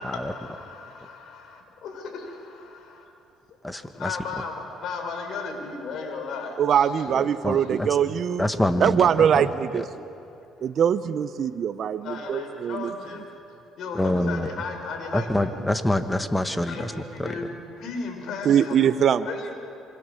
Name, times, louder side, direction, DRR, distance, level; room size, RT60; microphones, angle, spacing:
voice 1, 0.0-1.4 1.8-3.0 3.8-7.1 7.6-7.7 12.0-13.2 13.8-15.5 16.6-18.9 19.2-19.5, left 4 dB, 65° left, 4 dB, 5.4 m, -35 dB
voice 2, 3.6-4.2 7.1-7.9 8.4-9.1 9.4-9.5 9.7-9.9 13.9-14.5 15.1-16.9 17.2-17.3, left 1 dB, 10° left, 9 dB, 1.6 m, -26 dB
voice 3, 6.6-8.5 8.8-10.0 10.6-12.9 18.4-19.3, right 8 dB, 55° right, 12 dB, 0.9 m, -22 dB
26.5 x 24.5 x 7.2 m, 2.7 s
supercardioid pair, 85°, 0 cm